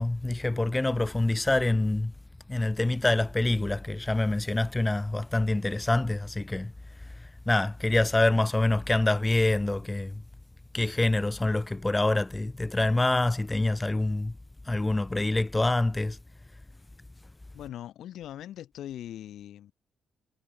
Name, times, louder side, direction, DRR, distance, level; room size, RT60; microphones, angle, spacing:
voice 1, 0.0-2.1 2.5-6.7 7.5-10.2 10.7-14.3 14.7-16.2, left 2 dB, 15° left, 0.4 m, -26 dB
voice 2, 17.5-19.7, left 11 dB, 75° left, 6.7 m, -41 dB
cardioid pair, 90°, 0 cm